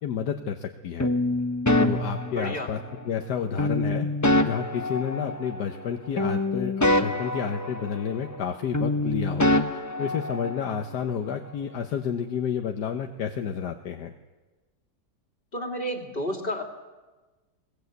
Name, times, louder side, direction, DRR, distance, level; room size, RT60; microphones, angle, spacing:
voice 1, 0.0-1.1 1.8-2.8 3.0-4.1 4.4-14.1, left 7 dB, 75° left, 5 dB, 1.6 m, -30 dB
sound 1, 1.0-3.0 3.6-5.9 6.2-8.5 8.7-10.8, left 1 dB, 15° left, 0.8 m, -26 dB
voice 2, 2.3-2.7 15.5-16.6, equal, 30° left, 3 dB, 2.8 m, -31 dB
22.0 x 19.0 x 8.1 m, 1.2 s
omnidirectional pair, 1.8 m